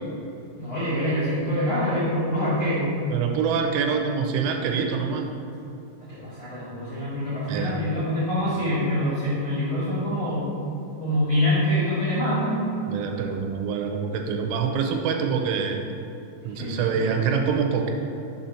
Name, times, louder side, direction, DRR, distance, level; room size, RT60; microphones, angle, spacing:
voice 1, 0.6-2.9 6.1-10.5 11.0-12.6 16.6-17.2, equal, 85° left, -11 dB, 1.4 m, -25 dB
voice 2, 3.1-5.3 7.5-7.8 12.9-15.8 16.5-17.9, right 6 dB, 85° right, 3 dB, 3.0 m, -25 dB
7.1 x 2.7 x 5.6 m, 2.9 s
omnidirectional pair, 5.6 m